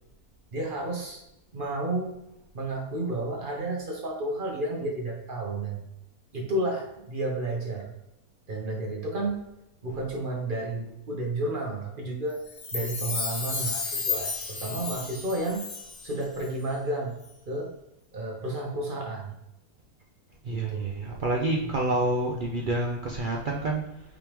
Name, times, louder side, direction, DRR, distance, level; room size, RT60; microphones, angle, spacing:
voice 1, 0.5-1.2 1.5-2.2 2.5-5.8 6.3-7.9 8.5-9.4 9.8-12.4 12.7-15.6 16.0-17.2 17.5-17.8 18.1-19.3 20.5-21.0 21.7-21.8, right 2 dB, 45° right, -1 dB, 0.9 m, -31 dB
Chime, 12.5-16.1 16.4-16.5, left 4 dB, 50° left, 0.4 m, -33 dB
voice 2, 20.4-24.0, right 2 dB, 80° right, -1 dB, 0.4 m, -28 dB
5.1 x 3.5 x 3.0 m, 0.87 s
omnidirectional pair, 1.6 m